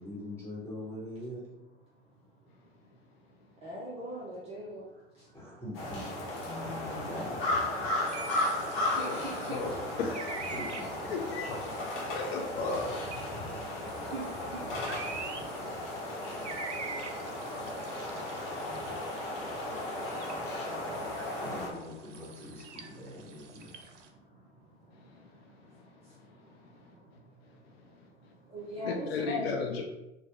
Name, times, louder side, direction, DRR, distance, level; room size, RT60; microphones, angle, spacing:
voice 1, 0.0-1.4 5.3-6.0 6.4-7.9 10.5-11.1 21.4-23.8, left 1 dB, 5° left, -7 dB, 1.2 m, -42 dB
voice 2, 2.0-5.9 8.3-10.0 11.7-13.0 13.2-21.5 22.1-29.5, equal, 20° right, -4 dB, 0.4 m, -47 dB
sound 1, 5.7-21.7, left 1 dB, 35° left, 0.9 m, -35 dB
sound 2, 8.1-24.1, right 4 dB, 75° right, 0.5 m, -46 dB
voice 3, 11.1-11.7 12.1-13.0 28.8-29.8, left 4 dB, 60° left, 2 dB, 0.5 m, -33 dB
3.2 x 2.0 x 2.9 m, 0.96 s
figure-of-eight pair, 80°, 36 cm